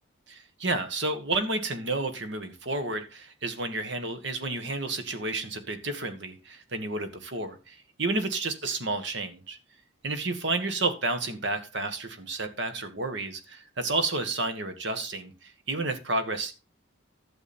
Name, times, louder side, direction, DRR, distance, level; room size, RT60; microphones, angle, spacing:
voice 1, 0.3-9.6 10.0-16.5, right 2 dB, 60° right, 1.6 m, -31 dB
12.0 x 7.2 x 4.4 m
head